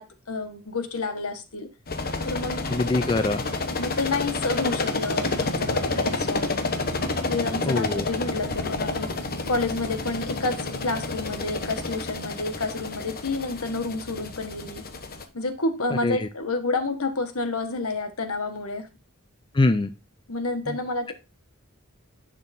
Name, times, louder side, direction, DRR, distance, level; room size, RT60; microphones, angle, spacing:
voice 1, 0.0-1.7 2.2-2.7 3.8-6.5 7.3-9.1 9.5-14.8 15.3-18.9 20.3-21.1, left 3 dB, 75° left, 1.4 m, -29 dB
sound 1, 1.9-15.2, left 3 dB, 45° left, 1.0 m, -29 dB
voice 2, 2.7-3.4 7.6-8.0 16.0-16.3 19.5-19.9 20.7-20.8, left 2 dB, 20° left, 0.4 m, -23 dB
11.0 x 6.0 x 2.7 m
head